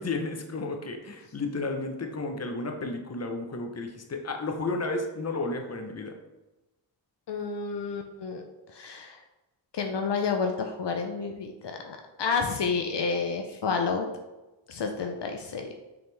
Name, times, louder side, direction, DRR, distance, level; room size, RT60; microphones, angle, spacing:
voice 1, 0.0-6.1, left 3 dB, 35° left, 4 dB, 0.9 m, -32 dB
voice 2, 7.3-8.4 8.7-9.2 9.7-14.1 14.7-15.8, left 5 dB, 65° left, 4 dB, 0.7 m, -30 dB
6.9 x 4.1 x 3.3 m, 1.1 s
cardioid pair, 80°, 45 cm